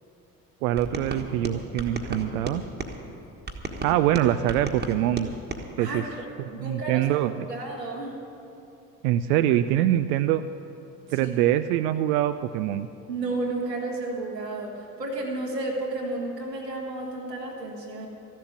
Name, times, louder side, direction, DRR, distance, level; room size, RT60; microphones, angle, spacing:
voice 1, 0.6-2.6 3.8-5.3 5.8-6.0 6.6-7.5 9.0-10.4 11.1-12.9, right 12 dB, 60° right, 11 dB, 0.5 m, -24 dB
sound 1, 0.8-3.0 3.5-5.6, right 2 dB, 20° right, 1.4 m, -34 dB
voice 2, 5.8-7.1 7.5-8.2 11.1-11.3 13.1-18.1, right 2 dB, 85° right, -1 dB, 1.7 m, -32 dB
14.0 x 7.5 x 9.4 m, 2.7 s
figure-of-eight pair, 55°, 48 cm